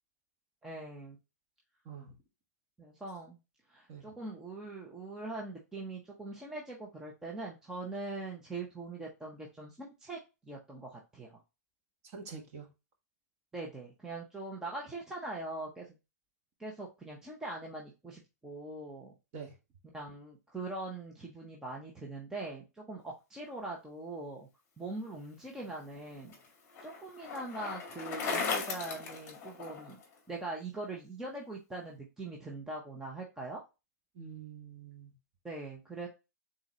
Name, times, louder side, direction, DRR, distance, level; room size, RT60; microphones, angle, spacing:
voice 1, 0.6-1.2 2.8-3.4 3.7-11.4 13.5-16.0 16.6-19.1 19.9-24.5 24.8-26.3 26.8-30.0 30.3-33.6 35.4-36.1, right 2 dB, 5° right, 0.7 m, -42 dB
voice 2, 1.8-2.2 3.9-4.1 12.1-12.7 19.3-19.6 34.1-35.1, right 6 dB, 30° right, 1.4 m, -46 dB
Bicycle, 25.6-30.0, left 5 dB, 25° left, 1.7 m, -37 dB
3.9 x 3.8 x 3.0 m
hypercardioid pair, 150°, 10 cm